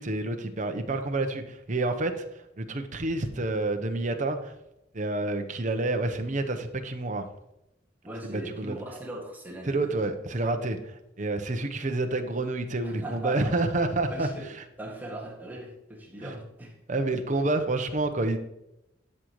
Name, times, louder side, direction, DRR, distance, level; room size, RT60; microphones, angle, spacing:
voice 1, 0.0-4.5 4.9-7.2 8.2-8.7 9.7-14.3 16.2-16.3 16.9-18.4, right 2 dB, 40° right, 6 dB, 0.8 m, -29 dB
voice 2, 8.0-10.0 12.8-13.5 14.1-14.5 14.8-16.8, right 2 dB, 10° right, -3 dB, 1.9 m, -39 dB
12.0 x 6.5 x 3.1 m, 0.86 s
head